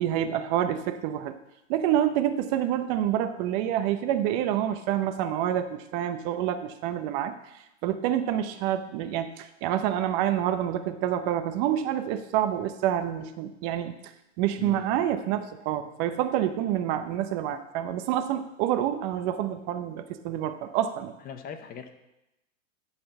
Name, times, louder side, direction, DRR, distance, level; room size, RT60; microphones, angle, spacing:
voice 1, 0.0-1.3 1.7-7.3 7.8-14.0 14.4-21.2, right 11 dB, 40° right, 9 dB, 0.8 m, -27 dB
voice 2, 14.6-15.0 21.2-21.9, left 7 dB, 25° left, 8 dB, 0.7 m, -40 dB
11.5 x 4.4 x 6.9 m, 0.92 s
hypercardioid pair, 120°, 38 cm